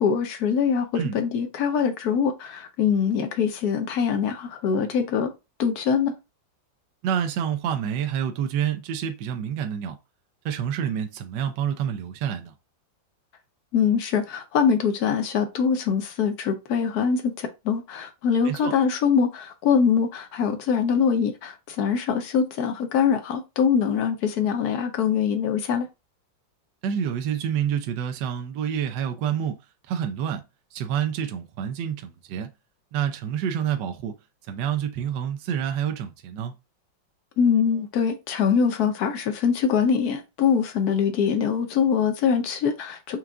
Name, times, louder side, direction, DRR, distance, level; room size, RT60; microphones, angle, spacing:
voice 1, 0.0-5.3 5.6-6.1 13.7-25.9 37.4-43.2, left 6 dB, 65° left, 1.1 m, -23 dB
voice 2, 7.0-10.0 10.4-12.5 18.4-18.7 26.8-29.6 29.9-30.4 30.7-32.5 32.9-34.2 34.5-36.6, right 9 dB, 75° right, 1.2 m, -28 dB
4.6 x 2.4 x 3.6 m
omnidirectional pair, 2.1 m